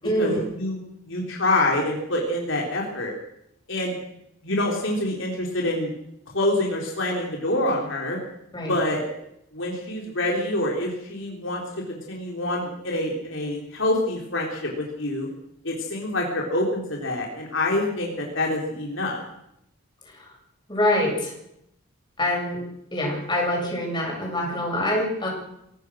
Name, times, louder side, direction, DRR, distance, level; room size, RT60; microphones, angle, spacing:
voice 1, 0.0-0.5 8.5-8.7 20.0-20.3 20.7-21.3 22.2-22.6 22.9-25.3, left 1 dB, 20° left, -2 dB, 7.8 m, -25 dB
voice 2, 1.1-3.1 3.7-3.9 4.4-5.9 6.3-8.2 8.7-9.0 9.5-11.6 11.9-15.3 15.6-19.2, left 1 dB, 60° left, -1 dB, 3.9 m, -26 dB
25.0 x 17.5 x 6.4 m, 0.79 s
head